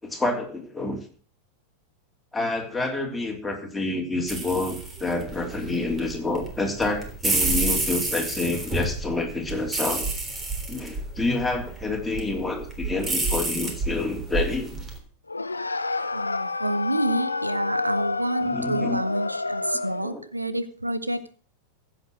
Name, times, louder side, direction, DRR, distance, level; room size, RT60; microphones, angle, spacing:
voice 1, 0.0-1.0 2.3-10.1 10.7-14.7 18.4-19.0 20.0-20.2, left 2 dB, 5° left, 1 dB, 3.3 m, -28 dB
sound 1, 4.3-15.0, right 2 dB, 20° right, 3.4 m, -30 dB
sound 2, 15.3-20.1, left 3 dB, 80° left, 0.8 m, -29 dB
voice 2, 16.1-21.3, right 1 dB, 85° right, 14 dB, 0.9 m, -28 dB
15.5 x 7.4 x 6.3 m, 0.43 s
figure-of-eight pair, 90°, 0 cm